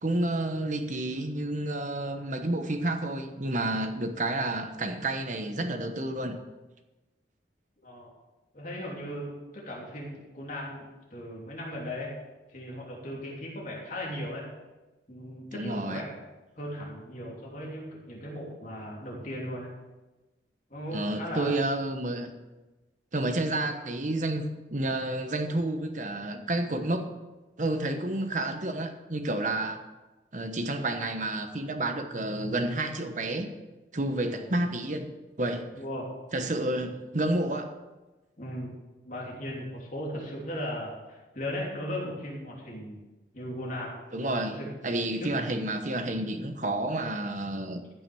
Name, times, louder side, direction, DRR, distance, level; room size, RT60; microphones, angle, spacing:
voice 1, 0.0-6.4 15.5-16.0 20.9-22.3 23.1-24.4 24.7-27.1 27.6-29.8 30.3-33.5 33.9-35.1 35.4-35.7 36.3-37.7 44.1-47.8, right 1 dB, 45° right, 7 dB, 1.1 m, -30 dB
voice 2, 8.5-12.1 12.5-14.5 15.1-16.2 16.6-19.7 20.7-21.5 34.3-34.6 35.7-36.1 38.4-38.7 39.0-43.0 43.3-44.7 45.2-45.3, left 1 dB, 45° left, -3 dB, 3.2 m, -37 dB
14.5 x 6.2 x 6.2 m, 1.1 s
head